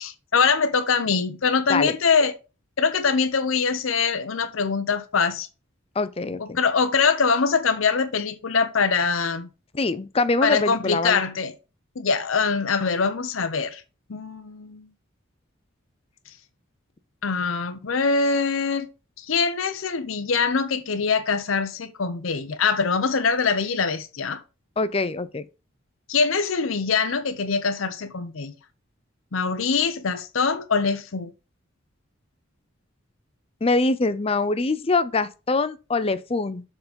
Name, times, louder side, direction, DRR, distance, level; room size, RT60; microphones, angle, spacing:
voice 1, 0.0-2.3 2.8-5.5 6.4-9.5 10.4-11.5 12.0-13.8 14.1-14.9 17.2-18.9 19.2-24.4 26.1-28.5 29.3-31.3, left 5 dB, 80° left, 0.7 m, -23 dB
voice 2, 6.0-6.6 9.7-11.2 24.8-25.4 33.6-36.6, left 3 dB, 30° left, 0.5 m, -24 dB
7.1 x 3.9 x 5.2 m
head